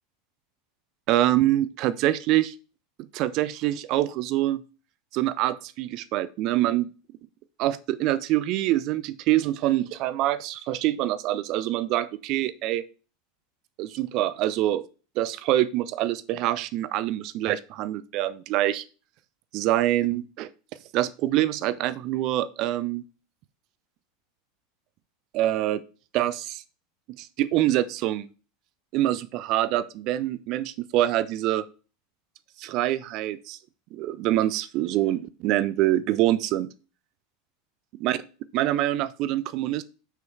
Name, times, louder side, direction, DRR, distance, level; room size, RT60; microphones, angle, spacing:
voice 1, 1.1-2.5 3.0-4.6 5.1-6.9 7.6-12.8 13.8-14.9 15.2-18.8 19.5-20.5 20.9-23.0 25.3-25.8 26.1-26.6 27.1-28.3 28.9-31.6 32.6-33.6 33.9-36.7 38.0-38.2 38.5-39.8, right 14 dB, 45° right, 15 dB, 0.5 m, -25 dB
6.2 x 5.1 x 4.5 m, 0.35 s
figure-of-eight pair, 80°, 0 cm